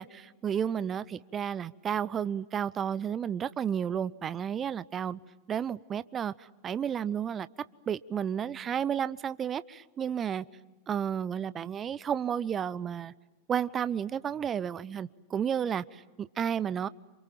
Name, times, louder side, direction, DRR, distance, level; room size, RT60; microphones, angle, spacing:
voice 1, 0.0-5.2 5.5-7.5 7.9-10.4 10.9-13.1 13.5-16.9, right 8 dB, 25° right, 0.8 m, -32 dB
28.0 x 27.5 x 7.6 m
figure-of-eight pair, 90°, 0 cm